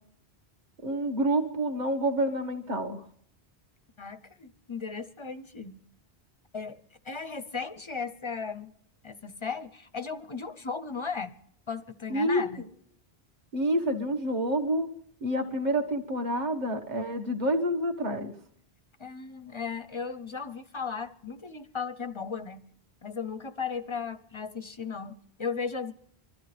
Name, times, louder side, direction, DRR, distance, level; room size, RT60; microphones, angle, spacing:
voice 1, 0.8-3.0 12.1-12.4 13.5-14.9 15.2-18.3, right 1 dB, 45° right, 1.6 m, -28 dB
voice 2, 4.0-5.8 6.5-8.7 9.0-11.3 11.7-12.6 19.0-22.6 23.0-25.9, left 5 dB, 35° left, 0.6 m, -36 dB
24.5 x 13.5 x 3.3 m
omnidirectional pair, 1.1 m